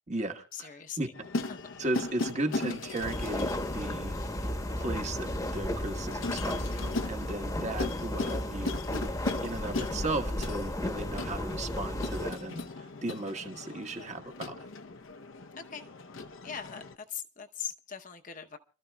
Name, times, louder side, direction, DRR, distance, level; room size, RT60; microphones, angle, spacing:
voice 1, 0.1-1.1 1.8-4.1 4.8-8.8 9.4-14.6, right 2 dB, 35° right, 1.2 m, -36 dB
voice 2, 0.6-1.0 1.5-1.6 15.7-15.8 16.4-16.8 17.1-18.6, left 8 dB, 40° left, 0.8 m, -40 dB
sound 1, 1.1-17.0, left 2 dB, 75° left, 0.7 m, -38 dB
sound 2, 3.0-12.3, left 1 dB, 15° left, 1.0 m, -34 dB
29.5 x 13.5 x 2.3 m
head